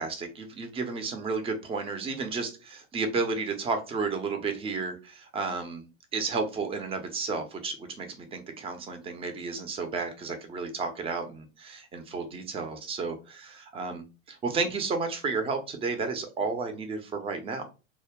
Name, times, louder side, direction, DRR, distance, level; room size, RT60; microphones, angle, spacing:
voice 1, 0.0-5.9 6.1-17.6, right 4 dB, 15° right, 7 dB, 0.5 m, -32 dB
2.2 x 2.2 x 3.5 m, 0.30 s
figure-of-eight pair, 90°, 39 cm